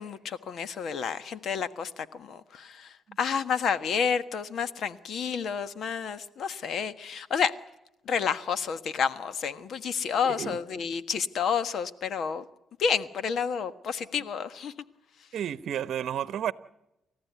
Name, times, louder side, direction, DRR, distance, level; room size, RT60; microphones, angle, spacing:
voice 1, 0.0-7.5 8.0-12.4 12.8-14.7, left 6 dB, 65° left, 1.4 m, -30 dB
voice 2, 10.2-10.6 15.3-16.5, right 10 dB, 70° right, 0.9 m, -32 dB
30.0 x 14.5 x 9.4 m
cardioid pair, 90°, 0 cm